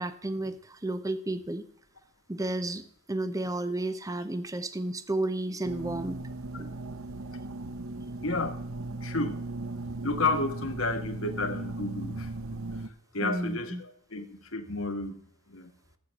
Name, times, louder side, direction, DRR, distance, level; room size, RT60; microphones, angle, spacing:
voice 1, 0.0-1.6 2.3-2.8 3.1-6.2 6.6-6.7 13.2-13.8, right 2 dB, 15° right, 12 dB, 0.7 m, -32 dB
sound 1, 5.6-12.9, right 2 dB, 75° right, 0.8 m, -37 dB
voice 2, 8.2-8.5 9.0-9.4 10.0-12.6 13.1-15.2 15.5-15.7, left 3 dB, 70° left, 5 dB, 1.6 m, -31 dB
13.5 x 8.3 x 5.3 m, 0.63 s
head